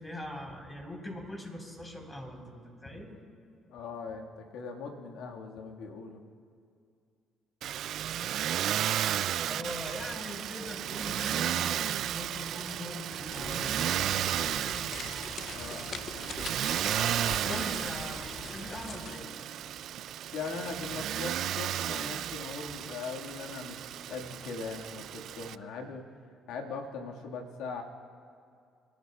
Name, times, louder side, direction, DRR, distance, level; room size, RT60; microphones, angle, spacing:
voice 1, 0.0-3.2 9.4-14.5 17.4-19.3, left 1 dB, 20° left, 0 dB, 3.8 m, -42 dB
voice 2, 3.7-6.2 15.5-15.9 17.5-17.6 20.3-26.0 26.5-27.8, left 4 dB, 80° left, 1 dB, 1.7 m, -40 dB
Motor vehicle (road), 7.6-25.6, right 11 dB, 70° right, 0.3 m, -33 dB
sound 1, 13.2-19.3, left 6 dB, 55° left, 0.5 m, -43 dB
28.0 x 12.0 x 2.3 m, 2.4 s
supercardioid pair, 65°, 0 cm